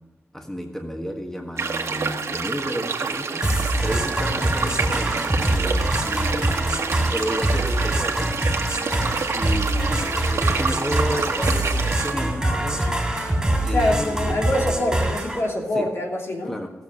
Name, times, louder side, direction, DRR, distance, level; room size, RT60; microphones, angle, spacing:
voice 1, 0.3-3.5 3.8-6.6 7.1-8.3 9.3-12.9 13.6-14.4 15.7-15.9 16.4-16.7, equal, 10° left, 3 dB, 1.4 m, -32 dB
sound 1, 1.6-12.1, right 5 dB, 80° right, 1.2 m, -28 dB
sound 2, 3.4-15.4, right 1 dB, 10° right, 3.0 m, -24 dB
sound 3, 9.2-14.3, equal, 45° left, 3.7 m, -37 dB
voice 2, 13.7-16.5, left 1 dB, 60° left, 0 dB, 2.8 m, -24 dB
17.0 x 7.1 x 6.5 m, 1.3 s
wide cardioid pair, 90°, 5 cm